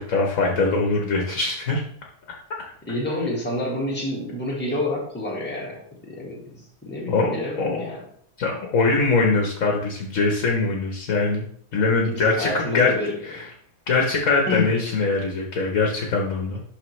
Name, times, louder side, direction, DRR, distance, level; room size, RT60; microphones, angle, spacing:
voice 1, 0.0-1.8 7.1-7.9 8.4-11.4 11.7-12.9 13.2-13.5 13.9-16.6, left 3 dB, 60° left, 1 dB, 1.5 m, -22 dB
voice 2, 2.8-8.0 12.1-13.4 14.5-14.7, left 1 dB, 5° left, -4 dB, 1.7 m, -29 dB
11.0 x 4.1 x 3.2 m, 0.62 s
omnidirectional pair, 1.6 m